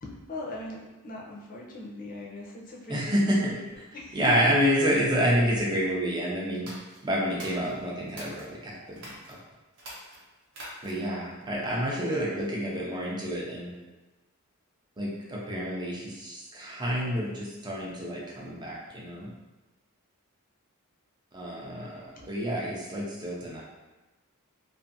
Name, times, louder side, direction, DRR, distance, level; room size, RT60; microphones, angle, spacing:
voice 1, 0.0-4.6 11.6-11.7 12.1-12.8 13.2-13.7 22.1-22.3, left 2 dB, 40° left, -3 dB, 0.5 m, -41 dB
voice 2, 2.9-6.7 7.0-9.4 10.8-13.7 15.0-19.3 21.3-23.6, equal, 20° right, -4 dB, 0.5 m, -29 dB
sound 1, 6.5-8.5 8.9-9.3 9.7-11.1, right 1 dB, 55° right, 0.8 m, -45 dB
2.5 x 2.5 x 2.6 m, 1.1 s
head